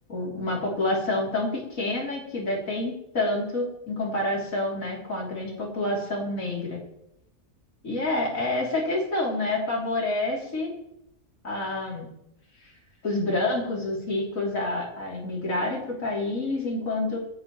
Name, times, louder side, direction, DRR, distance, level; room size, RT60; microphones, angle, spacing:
voice 1, 0.1-6.8 7.8-10.7 11.4-12.1 12.6-12.7 13.0-17.2, left 2 dB, 75° left, -3 dB, 3.5 m, -28 dB
27.0 x 9.4 x 3.1 m, 0.81 s
omnidirectional pair, 1.4 m